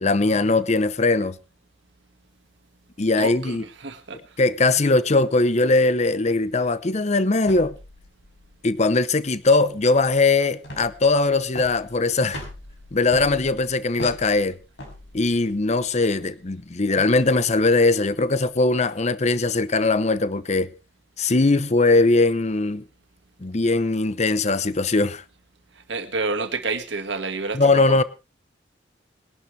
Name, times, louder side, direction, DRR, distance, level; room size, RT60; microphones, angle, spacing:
voice 1, 0.0-1.4 3.0-3.6 4.4-7.7 8.6-12.4 12.9-14.6 15.1-20.7 21.2-22.8 23.4-25.2 27.5-28.0, left 3 dB, 35° left, 0.7 m, -20 dB
voice 2, 3.2-4.2 25.9-28.0, right 3 dB, 70° right, 1.9 m, -29 dB
sound 1, 7.4-18.6, left 1 dB, 65° left, 5.7 m, -42 dB
21.0 x 11.5 x 3.3 m
head